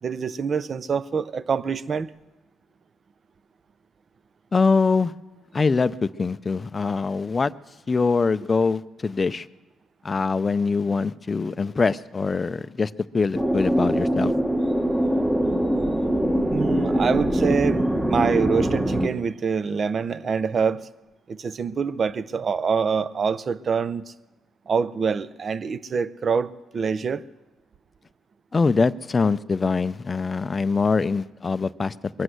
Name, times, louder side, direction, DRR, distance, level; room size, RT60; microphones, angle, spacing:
voice 1, 0.0-2.1 16.5-20.9 21.3-24.0 24.7-27.2, right 6 dB, 45° right, 0.6 m, -25 dB
voice 2, 4.5-5.1 5.5-7.5 7.9-9.5 10.0-14.3 28.5-32.2, left 4 dB, 30° left, 0.4 m, -23 dB
sound 1, 13.3-19.1, right 1 dB, 10° right, 1.1 m, -23 dB
22.5 x 8.1 x 7.9 m
cardioid pair, 90°, 0 cm